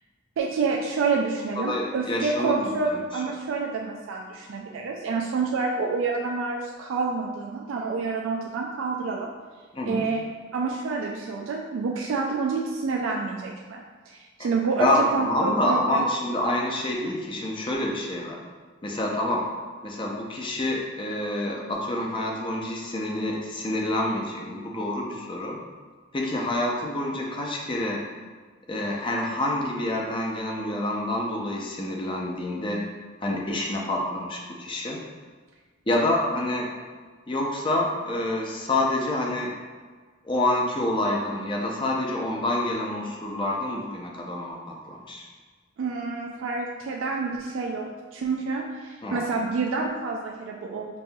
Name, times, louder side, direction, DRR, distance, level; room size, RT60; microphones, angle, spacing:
voice 1, 0.4-9.3 9.9-10.2 10.5-16.0 45.8-51.0, right 4 dB, 80° right, 0 dB, 0.3 m, -28 dB
voice 2, 1.6-3.0 9.7-10.1 14.4-14.5 14.8-18.4 18.8-19.5 19.8-25.6 26.1-28.1 28.7-32.8 33.2-35.0 35.9-36.7 37.3-39.5 40.2-45.3 49.0-49.2, left 1 dB, 25° left, -1 dB, 0.5 m, -27 dB
5.3 x 2.7 x 2.2 m, 1.5 s
head